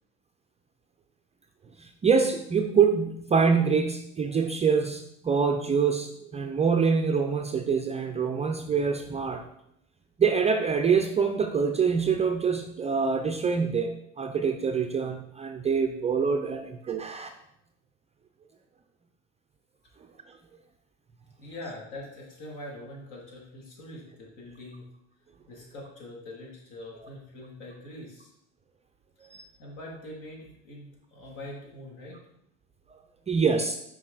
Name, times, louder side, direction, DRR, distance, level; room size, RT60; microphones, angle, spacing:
voice 1, 1.8-9.4 10.2-17.3 20.3-20.4 29.2-29.4 33.3-33.8, right 5 dB, 20° right, 5 dB, 0.4 m, -25 dB
voice 2, 21.4-24.9 25.5-28.3 29.3-32.2, left 1 dB, 60° left, -2 dB, 2.6 m, -43 dB
6.1 x 4.7 x 3.9 m, 0.77 s
hypercardioid pair, 95°, 37 cm